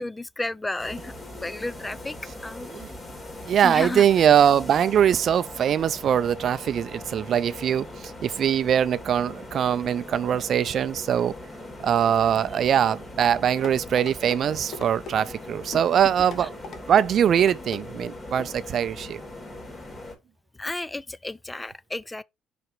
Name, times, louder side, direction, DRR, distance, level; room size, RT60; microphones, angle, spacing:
voice 1, 0.0-2.2 2.4-2.7 3.6-4.0 16.4-16.5 20.6-22.2, left 2 dB, 15° left, 0.4 m, -32 dB
sound 1, 0.8-20.1, left 1 dB, 35° left, 3.0 m, -40 dB
voice 2, 3.5-7.9 8.2-11.3 11.8-16.5 16.9-19.2, right 9 dB, 55° right, 0.4 m, -22 dB
sound 2, 13.6-14.4 14.7-15.2 15.7-15.9 16.3-17.1 17.4-17.8 18.4-18.6 19.0-19.1, left 4 dB, 60° left, 1.2 m, -39 dB
5.0 x 4.8 x 4.5 m
supercardioid pair, 65°, 0 cm